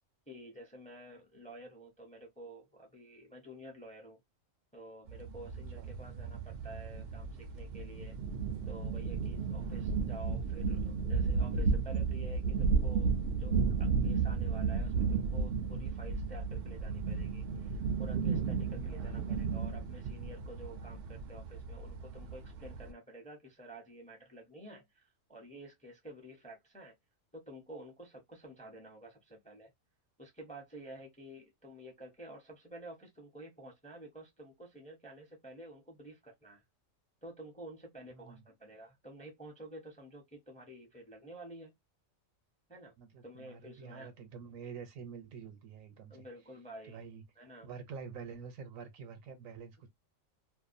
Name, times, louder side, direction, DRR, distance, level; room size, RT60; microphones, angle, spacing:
voice 1, 0.3-4.2 4.7-8.2 8.7-13.1 13.4-26.9 27.3-29.7 30.2-36.6 37.2-41.7 42.7-42.9 43.2-44.1 46.1-47.0 47.4-47.7, right 1 dB, 10° left, 0.6 m, -50 dB
sound 1, 5.1-22.9, right 5 dB, 60° right, 0.6 m, -33 dB
voice 2, 9.6-10.0 19.0-19.3 38.1-38.4 43.0-46.3 46.9-47.2 47.6-49.9, right 6 dB, 85° right, 1.1 m, -48 dB
2.6 x 2.2 x 2.5 m
omnidirectional pair, 1.4 m